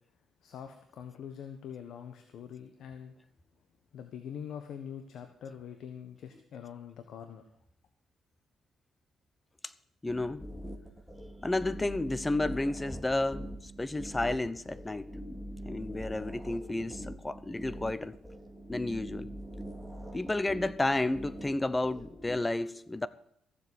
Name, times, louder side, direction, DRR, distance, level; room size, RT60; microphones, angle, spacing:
voice 1, 0.4-3.2 3.9-7.4, left 8 dB, 70° left, 1.3 m, -44 dB
voice 2, 10.0-10.5 11.4-15.1 15.6-18.2 18.7-19.3 20.1-23.1, left 2 dB, 15° left, 0.8 m, -31 dB
sound 1, 10.1-22.4, equal, ahead, 2.5 m, -43 dB
15.0 x 7.5 x 8.4 m
cardioid pair, 90°, 0 cm